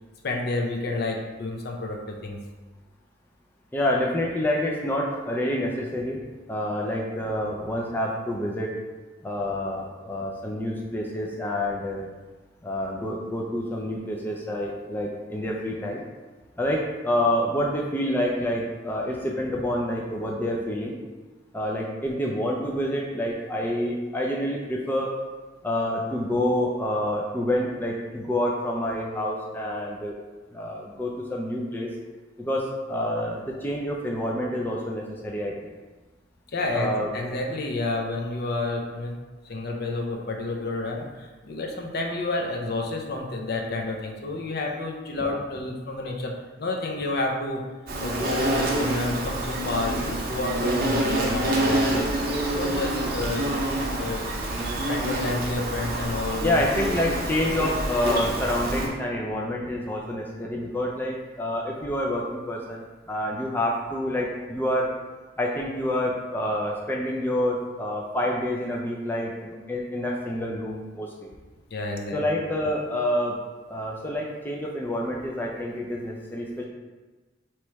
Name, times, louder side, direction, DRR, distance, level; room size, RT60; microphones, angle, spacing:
voice 1, 0.2-2.4 36.5-39.2 39.4-47.6 48.0-52.0 52.4-53.4 54.0-54.3 54.9-56.6 71.7-72.2, left 2 dB, 55° left, 1 dB, 0.6 m, -30 dB
voice 2, 3.7-6.2 6.5-8.7 9.2-12.1 12.6-16.0 16.6-20.9 21.5-25.2 25.6-30.1 30.5-31.9 32.4-35.7 36.7-37.1 45.2-45.4 56.4-64.9 65.4-71.3 72.1-73.4 73.7-76.6, left 1 dB, 10° left, -2 dB, 0.4 m, -28 dB
Insect, 47.9-58.9, right 1 dB, 50° right, 0.7 m, -27 dB
3.1 x 3.0 x 4.5 m, 1.2 s
head